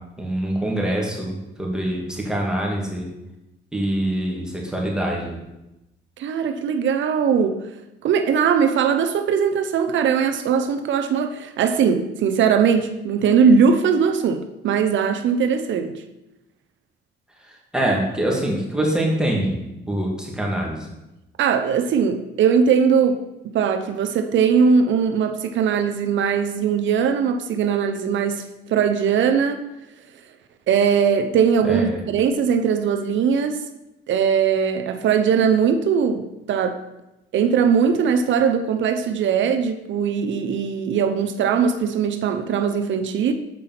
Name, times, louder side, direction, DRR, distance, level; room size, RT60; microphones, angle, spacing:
voice 1, 0.2-3.1 3.7-5.4 17.7-19.6 19.9-20.9 31.6-32.0, right 1 dB, 5° right, -2 dB, 2.4 m, -24 dB
voice 2, 6.2-7.6 8.0-16.0 21.4-23.2 23.4-28.4 28.7-29.6 30.7-33.6 34.1-36.8 37.3-43.3, right 6 dB, 70° right, 8 dB, 0.7 m, -20 dB
7.5 x 4.8 x 5.9 m, 0.93 s
cardioid pair, 90°, 20 cm